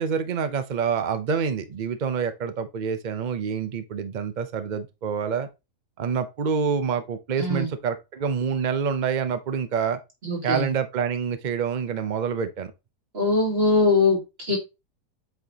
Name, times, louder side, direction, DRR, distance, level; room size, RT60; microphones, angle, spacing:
voice 1, 0.0-5.5 6.0-10.0 10.4-12.7, right 6 dB, 80° right, 0.4 m, -27 dB
voice 2, 7.4-7.7 10.2-10.7 13.1-14.6, left 3 dB, 35° right, 2.9 m, -22 dB
8.0 x 4.4 x 2.8 m
omnidirectional pair, 1.8 m